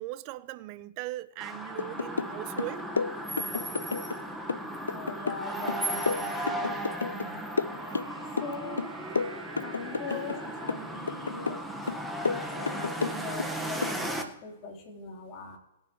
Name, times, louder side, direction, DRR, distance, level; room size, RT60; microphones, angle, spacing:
voice 1, 0.0-3.0 7.1-7.6 10.1-10.3 11.7-11.9, right 17 dB, 40° right, 0.5 m, -40 dB
sound 1, 1.4-14.2, right 1 dB, ahead, 1.3 m, -36 dB
sound 2, 1.8-2.3 2.6-4.2 4.5-7.3 7.6-8.5 8.8-10.4 10.7-11.6 11.9-13.5 13.8-14.0, left 5 dB, 90° left, 0.3 m, -31 dB
voice 2, 4.8-6.7 8.4-8.8 9.6-11.7 12.3-15.6, left 4 dB, 35° left, 3.6 m, -41 dB
Wind instrument woodwind instrument, 7.7-11.9, right 5 dB, 65° right, 2.3 m, -50 dB
20.5 x 9.2 x 3.1 m
hypercardioid pair, 125°, 0 cm